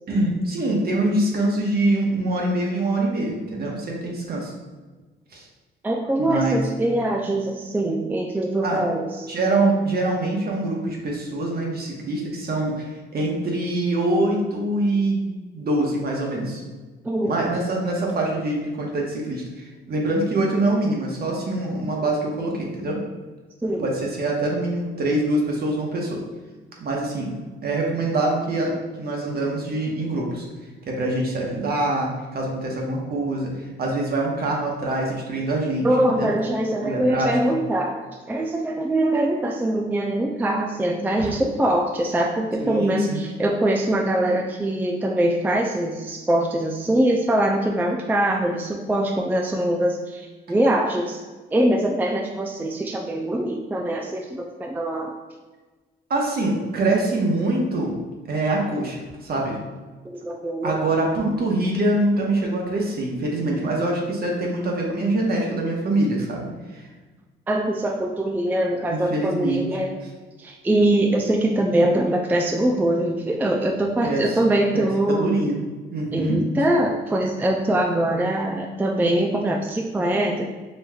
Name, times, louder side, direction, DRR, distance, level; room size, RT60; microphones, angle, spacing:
voice 1, 0.1-4.5 5.3-5.4 6.2-6.7 8.6-8.8 9.3-12.8 13.1-15.3 15.5-16.6 17.2-23.0 23.8-26.2 26.8-27.3 27.6-30.4 30.9-35.9 36.1-36.3 36.8-37.6 41.2-41.3 42.6-43.2 56.1-57.9 58.3-59.6 60.6-66.5 66.7-66.9 68.9-69.8 74.0-74.4 74.7-75.6 75.9-76.4, right 2 dB, 50° right, -1 dB, 1.0 m, -24 dB
voice 2, 5.8-9.3 17.0-17.3 23.6-23.9 35.8-38.0 38.3-51.2 51.5-55.1 60.0-60.8 67.5-70.0 70.4-75.3 76.1-80.4, right 1 dB, 10° right, 1 dB, 0.3 m, -23 dB
5.3 x 3.0 x 2.3 m, 1.3 s
cardioid pair, 90°, 20 cm